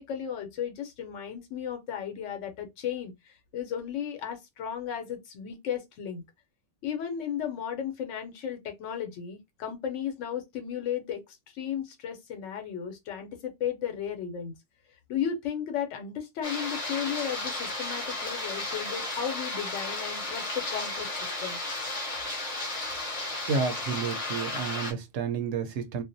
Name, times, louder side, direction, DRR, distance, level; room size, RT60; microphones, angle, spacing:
voice 1, 0.0-6.2 6.8-11.2 11.5-14.5 15.1-21.1 21.4-21.6, left 8 dB, 85° left, 1.0 m, -34 dB
sound 1, 16.4-24.9, left 2 dB, 35° left, 0.7 m, -34 dB
voice 2, 23.5-26.0, right 5 dB, 75° right, 0.9 m, -30 dB
2.4 x 2.1 x 2.5 m
omnidirectional pair, 1.2 m